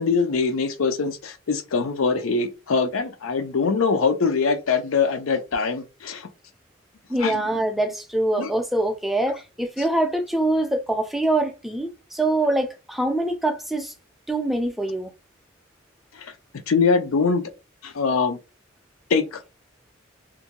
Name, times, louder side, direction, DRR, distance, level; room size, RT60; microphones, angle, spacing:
voice 1, 0.0-6.3 7.2-7.4 8.4-8.5 16.2-16.3 16.7-17.4 17.8-18.4 19.1-19.4, left 4 dB, 85° left, 0.5 m, -23 dB
voice 2, 7.1-13.9 14.3-15.1, right 1 dB, ahead, 0.4 m, -24 dB
2.6 x 2.2 x 2.8 m
head